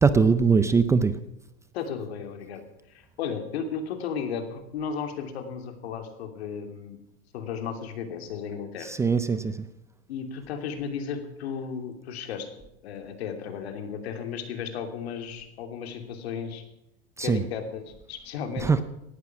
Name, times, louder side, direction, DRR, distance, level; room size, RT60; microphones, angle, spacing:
voice 1, 0.0-1.1 8.8-9.6 17.2-17.4 18.6-18.8, right 5 dB, 10° right, 13 dB, 0.5 m, -21 dB
voice 2, 1.7-2.6 2.9-7.0 7.3-8.9 10.1-12.5 12.8-16.6 17.2-18.8, left 6 dB, 85° left, 6 dB, 3.0 m, -34 dB
18.0 x 12.0 x 6.1 m, 0.87 s
supercardioid pair, 150°, 31 cm